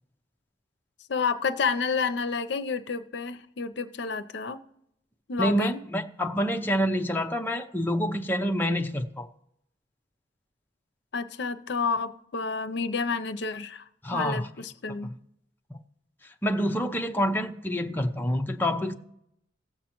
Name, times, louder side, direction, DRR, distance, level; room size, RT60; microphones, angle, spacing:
voice 1, 1.1-4.6 5.3-5.8 11.1-13.8 14.1-15.1, left 4 dB, 65° left, 0.6 m, -30 dB
voice 2, 5.4-9.3 14.0-14.5 15.7-15.8 16.4-18.9, equal, 10° left, 0.6 m, -27 dB
18.0 x 7.4 x 3.0 m
head